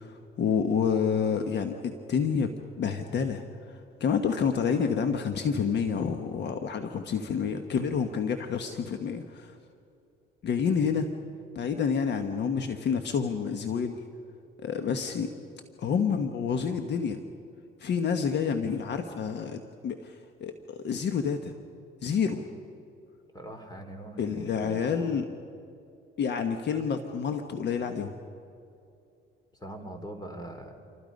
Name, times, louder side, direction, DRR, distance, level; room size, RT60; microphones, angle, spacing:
voice 1, 0.0-2.5 2.8-9.6 10.4-11.1 11.5-14.0 14.6-15.3 15.8-17.2 17.8-21.5 22.0-22.4 24.2-25.3 26.2-28.1, left 6 dB, 60° left, 6 dB, 1.3 m, -28 dB
voice 2, 23.3-25.2 29.6-30.7, right 1 dB, 20° left, 6 dB, 3.5 m, -42 dB
28.0 x 24.0 x 5.3 m, 2.5 s
cardioid pair, 100°, 20 cm